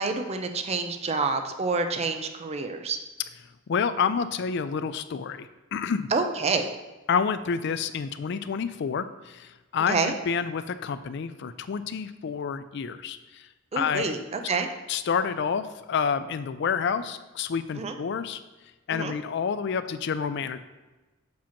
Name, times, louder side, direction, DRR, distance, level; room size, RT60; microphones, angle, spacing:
voice 1, 0.0-3.0 6.1-6.7 9.9-10.1 13.7-14.7 17.8-17.9 18.9-19.1, right 4 dB, 35° right, 6 dB, 0.5 m, -28 dB
voice 2, 3.7-6.1 7.1-13.5 13.8-14.1 14.9-18.4 18.9-20.6, left 6 dB, 60° left, 12 dB, 0.4 m, -29 dB
7.4 x 2.9 x 5.8 m, 1.1 s
head